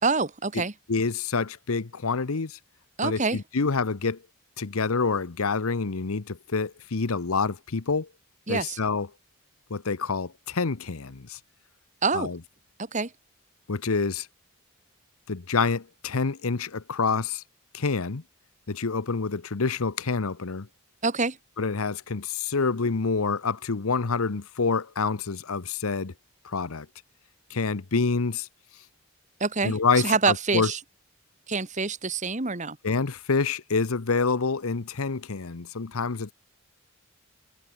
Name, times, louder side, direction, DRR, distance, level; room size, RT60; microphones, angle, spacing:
voice 1, 0.0-0.7 3.0-3.4 8.5-8.8 12.0-12.3 12.9-13.1 21.0-21.4 29.4-29.7 30.0-30.8 31.5-32.8, right 4 dB, 35° right, 1.6 m, -26 dB
voice 2, 0.9-2.6 3.0-4.2 4.6-8.1 8.5-9.1 9.7-11.4 12.1-12.4 13.7-14.3 15.3-17.4 17.7-18.2 18.7-20.7 21.6-26.1 26.4-26.9 27.5-28.5 29.6-30.7 32.8-36.3, left 4 dB, 80° left, 0.9 m, -27 dB
head